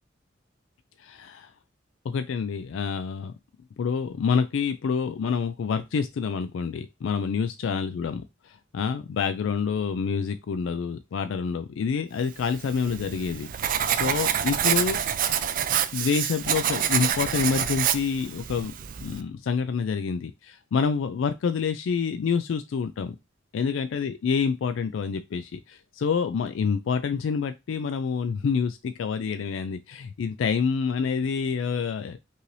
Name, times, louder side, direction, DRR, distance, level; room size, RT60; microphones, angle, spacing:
voice 1, 1.0-1.5 2.0-3.3 3.8-15.0 15.9-18.7 19.0-23.2 23.5-32.2, left 6 dB, 80° left, 9 dB, 0.3 m, -27 dB
Writing, 12.5-19.2, right 9 dB, 45° right, 0.4 m, -27 dB
5.4 x 2.6 x 3.2 m, 0.24 s
head